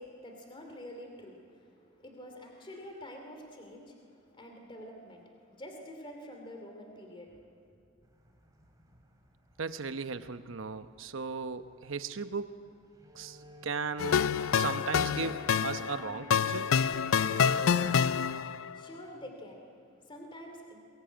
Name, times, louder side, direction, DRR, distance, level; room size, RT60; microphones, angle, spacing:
voice 1, 0.0-7.8 18.4-20.8, equal, 25° left, 3 dB, 2.6 m, -48 dB
sound 1, 8.0-17.9, left 1 dB, 15° right, 2.6 m, -50 dB
voice 2, 9.6-12.7 13.1-16.7, right 4 dB, 70° right, 10 dB, 0.9 m, -37 dB
sound 2, 14.0-18.7, left 7 dB, 85° left, 0.5 m, -27 dB
22.0 x 21.5 x 9.0 m, 2.5 s
head